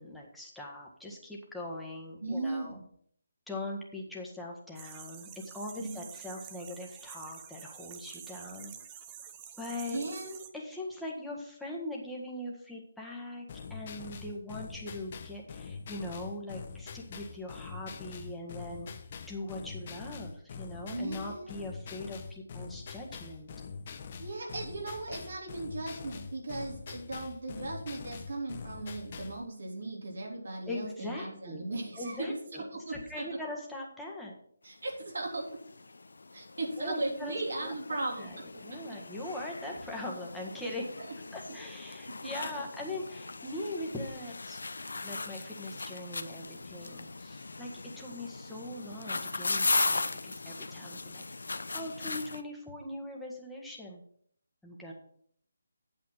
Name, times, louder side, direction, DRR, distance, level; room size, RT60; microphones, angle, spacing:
voice 1, 0.0-2.8 3.5-8.7 9.6-10.0 10.5-18.9 19.3-23.5 30.7-31.7 32.0-32.6 32.9-34.3 36.8-38.4 38.6-40.8 41.3-44.6 45.0-47.7 48.0-51.2 51.7-54.0 54.6-54.9, left 1 dB, ahead, -4 dB, 1.6 m, -41 dB
voice 2, 2.2-2.8 5.7-6.0 9.9-10.5 20.9-21.5 24.2-33.2 34.6-35.5 36.3-38.6 41.0-41.1 42.4-42.5, right 2 dB, 70° right, -1 dB, 3.4 m, -37 dB
sound 1, 4.8-10.5, right 8 dB, 20° right, 0.8 m, -48 dB
sound 2, 13.5-29.4, left 5 dB, 40° left, 0.9 m, -44 dB
sound 3, 35.0-35.1 35.3-52.4, left 3 dB, 75° left, 0.8 m, -38 dB
8.8 x 7.2 x 5.8 m, 0.64 s
figure-of-eight pair, 155°, 0 cm